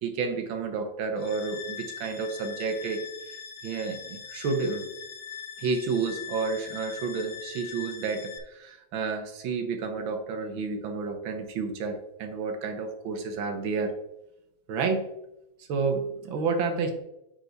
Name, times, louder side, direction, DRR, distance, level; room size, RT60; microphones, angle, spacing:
voice 1, 0.0-3.0 3.6-4.9 5.6-14.0 14.7-15.1 15.7-16.9, right 4 dB, 85° right, 6 dB, 1.8 m, -30 dB
sound 1, 1.2-8.4, left 7 dB, 90° left, 1.7 m, -41 dB
8.8 x 4.5 x 4.0 m, 0.89 s
omnidirectional pair, 2.1 m